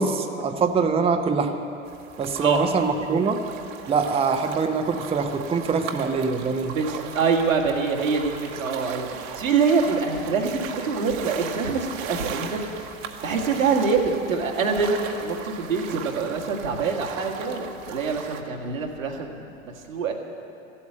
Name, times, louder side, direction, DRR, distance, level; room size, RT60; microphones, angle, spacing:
voice 1, 0.0-1.6 2.2-3.4 3.9-6.8, right 5 dB, 15° right, 5 dB, 0.8 m, -24 dB
sound 1, 1.8-18.4, right 8 dB, 45° right, 1.2 m, -38 dB
voice 2, 6.7-12.6 13.2-20.1, right 5 dB, 85° right, 0 dB, 2.0 m, -25 dB
14.5 x 8.5 x 8.8 m, 2.6 s
hypercardioid pair, 95°, 39 cm